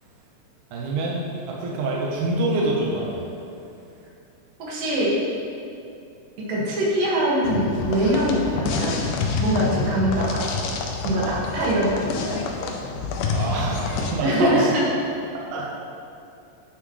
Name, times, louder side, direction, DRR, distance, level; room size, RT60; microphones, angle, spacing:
voice 1, 0.7-1.2 1.5-3.3 13.3-14.7 15.3-15.7, right 2 dB, 75° right, -4 dB, 2.5 m, -25 dB
voice 2, 4.6-5.2 6.5-9.0 9.4-10.7 11.0-12.4 14.2-14.8, right 1 dB, 90° right, -6 dB, 3.7 m, -23 dB
sound 1, 7.4-14.1, left 4 dB, 80° left, 2.3 m, -27 dB
10.0 x 9.7 x 3.2 m, 2.6 s
omnidirectional pair, 3.8 m